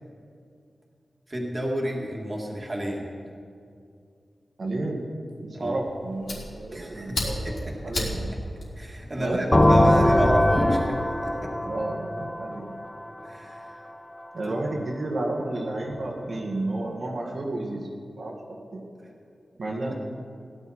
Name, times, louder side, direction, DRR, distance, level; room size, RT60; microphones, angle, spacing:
voice 1, 1.3-3.1 5.5-5.8 6.7-7.8 8.8-11.5 13.2-13.8 14.5-14.6 19.5-19.9, right 1 dB, 30° right, -1 dB, 2.1 m, -31 dB
voice 2, 4.6-5.1 5.4-8.3 9.2-9.9 11.6-12.7 14.3-17.9 18.2-18.9 19.6-19.9, right 2 dB, 60° right, -2 dB, 1.9 m, -31 dB
Fire, 5.6-10.2, left 1 dB, 75° left, 3.9 m, -35 dB
sound 1, 9.5-13.2, left 1 dB, 25° left, 0.9 m, -21 dB
17.5 x 11.0 x 4.4 m, 2.4 s
wide cardioid pair, 90°, 0 cm